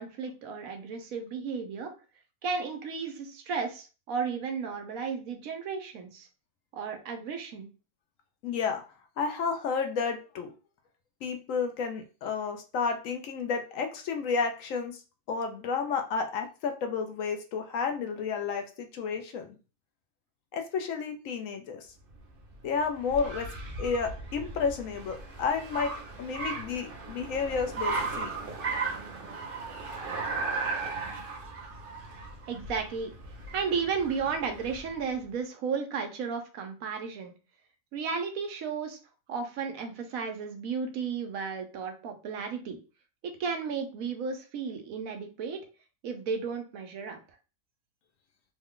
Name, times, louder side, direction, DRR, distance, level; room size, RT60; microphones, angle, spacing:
voice 1, 0.0-1.9 2.4-6.3 6.7-7.7 32.5-33.1 33.5-37.3 37.9-39.0 39.3-42.8 43.2-45.6 46.0-47.2, right 5 dB, 70° right, 5 dB, 1.1 m, -34 dB
voice 2, 8.4-8.8 9.2-10.5 11.2-15.0 15.3-19.6 20.5-21.9 22.6-23.5 23.8-28.3, left 5 dB, 70° left, 5 dB, 0.9 m, -31 dB
Car, 22.1-35.0, right 4 dB, 45° right, 0.8 m, -36 dB
3.3 x 2.2 x 3.5 m, 0.34 s
omnidirectional pair, 1.5 m